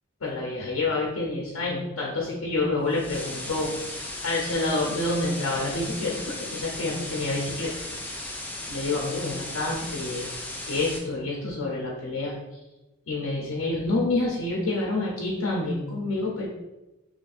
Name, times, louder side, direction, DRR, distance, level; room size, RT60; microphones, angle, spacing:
voice 1, 0.2-7.7 8.7-10.3 10.7-12.3 13.1-16.5, left 2 dB, 85° left, -3 dB, 0.7 m, -28 dB
sound 1, 2.9-11.0, left 1 dB, 10° left, 0.4 m, -36 dB
3.1 x 2.6 x 4.0 m, 1.0 s
head